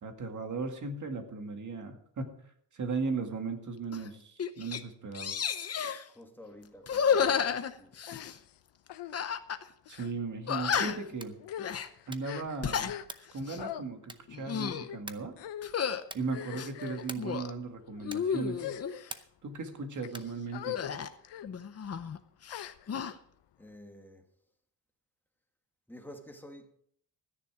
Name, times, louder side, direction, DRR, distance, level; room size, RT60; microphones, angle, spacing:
voice 1, 0.0-2.4 2.7-5.5 9.9-11.3 12.1-12.9 13.3-15.3 16.1-18.7 19.4-20.8, right 4 dB, 45° right, 2.0 m, -37 dB
sound 1, 3.9-4.1 4.4-4.8 5.1-6.0 6.8-8.4 9.1-9.6 9.9-10.0 10.5-11.1 11.6-11.9 12.4-12.9 13.4-13.6 14.3-14.9 15.6-16.0 16.5-17.5 18.0-19.0 20.8-22.2 22.4-23.1, left 7 dB, 35° left, 0.8 m, -32 dB
voice 2, 6.1-7.9 23.6-24.2 25.9-26.7, equal, 5° left, 1.5 m, -50 dB
sound 2, 7.1-7.4 8.0-8.6 8.9-9.2 9.9-10.1 10.8-11.0 11.4-13.3 13.6-13.8 14.6-15.0 15.4-15.7 16.3-17.1 17.8-18.0 18.5-19.2 19.8-20.1 20.5-20.9 21.2-21.5 22.5-23.1, left 11 dB, 75° left, 0.8 m, -42 dB
sound 3, 11.1-11.5 12.0-12.4 13.0-13.4 14.0-14.4 15.1-15.4 16.0-16.4 17.0-17.4 18.1-18.4 19.1-19.5 20.1-20.4, right 2 dB, 10° right, 0.6 m, -46 dB
14.0 x 10.0 x 4.9 m
wide cardioid pair, 150°, 42 cm